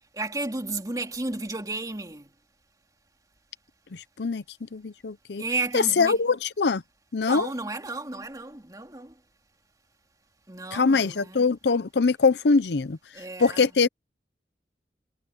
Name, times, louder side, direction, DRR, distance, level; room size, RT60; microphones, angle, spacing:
voice 1, 0.1-2.3 5.4-6.2 7.2-9.2 10.5-11.4 13.1-13.6, right 3 dB, 20° right, 2.6 m, -33 dB
voice 2, 4.7-5.4 5.7-6.8 7.1-7.5 10.7-13.0 13.4-13.9, left 4 dB, 70° left, 0.6 m, -22 dB
head